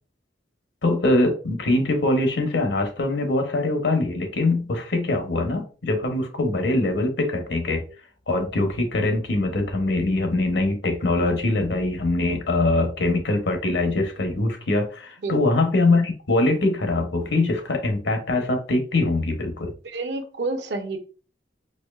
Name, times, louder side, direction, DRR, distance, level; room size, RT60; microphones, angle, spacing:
voice 1, 0.8-7.8 8.3-19.7, left 2 dB, 80° left, 5 dB, 0.8 m, -23 dB
voice 2, 19.8-21.0, right 3 dB, 70° right, 5 dB, 0.7 m, -29 dB
4.2 x 2.6 x 2.3 m, 0.37 s
head